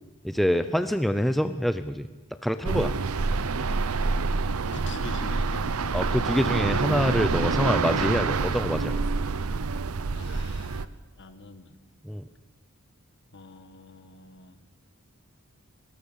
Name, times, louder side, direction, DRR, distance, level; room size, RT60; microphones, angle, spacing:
voice 1, 0.2-2.1 2.4-2.9 5.9-9.0 12.0-12.3, equal, ahead, 10 dB, 0.6 m, -26 dB
sound 1, 2.6-10.9, right 4 dB, 75° right, 0.7 m, -27 dB
voice 2, 4.6-5.9 10.1-10.9 11.2-11.8 13.3-14.6, left 3 dB, 55° left, 10 dB, 1.5 m, -44 dB
19.5 x 18.5 x 7.3 m, 1.1 s
head